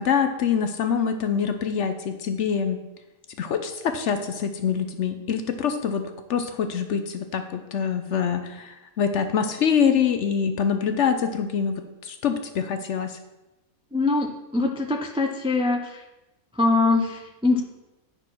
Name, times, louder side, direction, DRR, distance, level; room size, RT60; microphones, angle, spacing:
voice 1, 0.0-2.8 3.4-13.2, left 7 dB, 60° left, 8 dB, 0.8 m, -25 dB
voice 2, 13.9-14.3 14.5-15.9 16.6-17.6, left 3 dB, 10° right, 3 dB, 0.3 m, -22 dB
10.0 x 4.5 x 5.9 m, 1.0 s
omnidirectional pair, 1.6 m